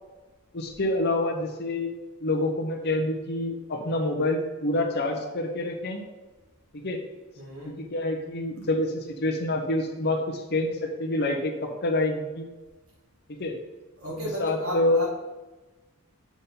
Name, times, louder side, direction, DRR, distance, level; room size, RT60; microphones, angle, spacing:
voice 1, 0.5-1.9 2.2-6.0 6.7-7.0 7.6-12.5 13.3-13.5 14.4-15.0, left 2 dB, 50° left, 1 dB, 0.9 m, -27 dB
voice 2, 7.4-7.8 14.0-15.1, equal, 65° right, -4 dB, 2.1 m, -34 dB
7.2 x 4.3 x 5.4 m, 1.2 s
head